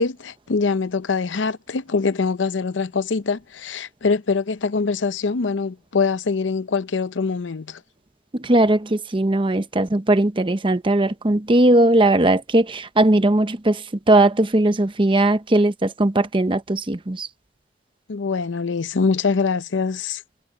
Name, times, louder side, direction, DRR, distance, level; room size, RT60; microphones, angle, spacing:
voice 1, 0.0-7.8 18.1-20.2, left 4 dB, 80° left, 0.6 m, -23 dB
voice 2, 8.3-13.8 14.1-17.3, right 1 dB, 30° right, 0.8 m, -18 dB
head